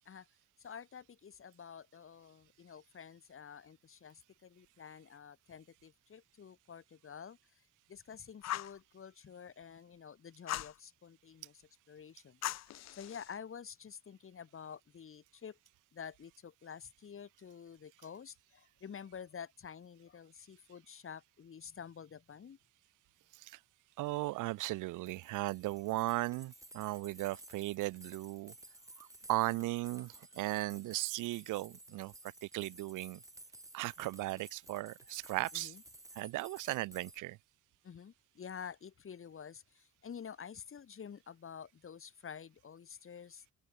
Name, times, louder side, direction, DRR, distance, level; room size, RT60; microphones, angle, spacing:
voice 1, 0.6-7.4 7.9-12.4 12.9-15.6 15.9-22.6 35.5-35.8 37.8-43.4, left 7 dB, 45° left, 2.5 m, -49 dB
Fire, 8.4-8.8 10.5-10.8 12.4-13.3, left 13 dB, 60° left, 0.7 m, -39 dB
voice 2, 24.0-28.5 29.0-32.1 32.4-33.2 33.7-35.7 36.2-37.4, right 19 dB, 90° right, 0.7 m, -37 dB
sound 1, 25.1-37.2, right 2 dB, 10° right, 4.8 m, -55 dB
cardioid pair, 90°, 30 cm